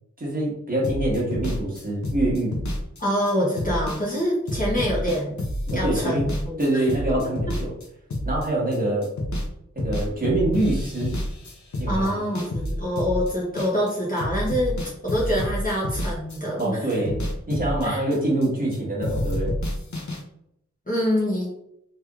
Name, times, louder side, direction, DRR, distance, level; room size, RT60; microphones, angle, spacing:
voice 1, 0.2-2.5 5.7-6.3 6.6-7.7 8.2-9.1 9.7-11.1 11.8-12.2 16.6-17.2 17.5-19.5, right 1 dB, 30° right, -5 dB, 1.3 m, -25 dB
sound 1, 0.8-9.5 9.8-13.9 14.2-18.8 19.0-20.2, left 1 dB, 70° left, 0.7 m, -29 dB
voice 2, 3.0-5.4 5.7-6.9 11.9-14.7 15.0-16.8 17.8-18.0 20.9-21.5, equal, 25° left, -7 dB, 0.9 m, -25 dB
3.3 x 3.0 x 2.3 m, 0.78 s
wide cardioid pair, 55°, 30 cm